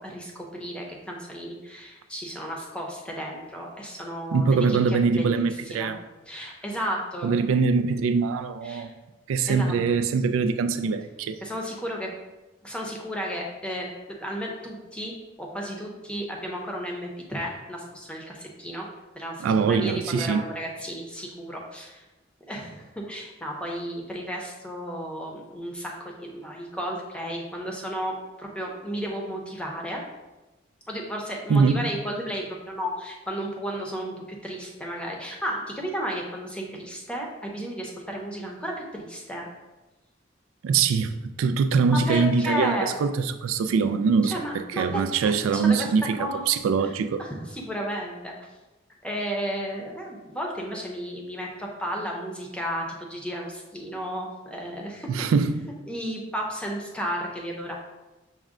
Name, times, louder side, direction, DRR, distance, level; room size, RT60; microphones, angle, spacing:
voice 1, 0.0-5.9 6.2-7.3 8.6-8.9 9.5-9.8 11.4-12.1 12.6-18.9 19.1-22.0 22.5-30.0 30.9-39.5 42.1-42.9 44.2-45.9 46.2-46.4 46.8-46.9 47.2-48.5 49.0-55.1 55.9-57.8, equal, 5° left, 0.6 m, -33 dB
voice 2, 4.3-6.0 7.2-8.9 9.3-11.4 19.4-20.5 31.5-31.9 40.6-46.2 46.5-47.2 55.1-55.7, right 5 dB, 90° right, 0.3 m, -23 dB
6.2 x 2.1 x 3.6 m
head